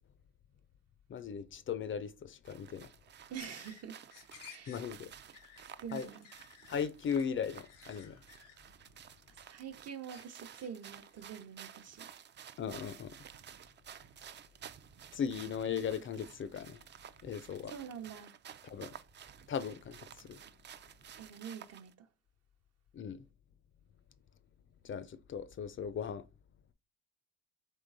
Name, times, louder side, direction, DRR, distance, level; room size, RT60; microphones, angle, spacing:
voice 1, 1.1-2.9 4.7-5.1 5.9-6.1 6.7-8.2 12.6-13.2 15.1-16.8 17.2-17.7 18.7-18.9 19.5-20.4 22.9-23.2 24.8-26.2, left 7 dB, 40° left, 0.4 m, -37 dB
sound 1, 2.5-21.9, right 9 dB, 40° right, 0.4 m, -53 dB
sound 2, 3.3-9.7 10.1-11.2, left 8 dB, 90° left, 0.9 m, -57 dB
voice 2, 3.3-4.0 4.4-4.8 5.6-6.3 9.3-12.1 17.7-18.3 21.1-22.1, right 8 dB, 55° right, 0.8 m, -46 dB
3.7 x 3.2 x 3.9 m
cardioid pair, 90°, 30 cm